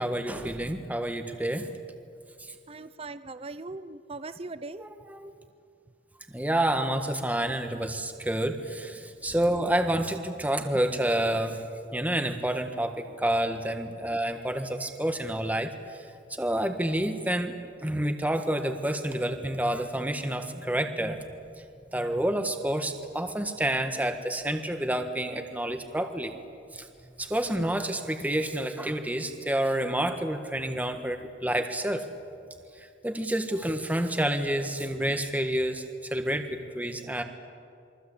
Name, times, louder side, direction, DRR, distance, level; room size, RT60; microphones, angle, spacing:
voice 1, 0.0-1.8 2.4-2.5 4.8-5.3 6.3-11.6 11.9-16.0 16.3-17.6 17.8-21.2 21.9-26.3 26.7-26.9 27.2-32.1 32.8-37.2, right 1 dB, 10° right, 6 dB, 1.5 m, -29 dB
voice 2, 2.7-4.9, right 3 dB, 30° right, 13 dB, 0.7 m, -39 dB
28.0 x 23.0 x 8.6 m, 2.4 s
head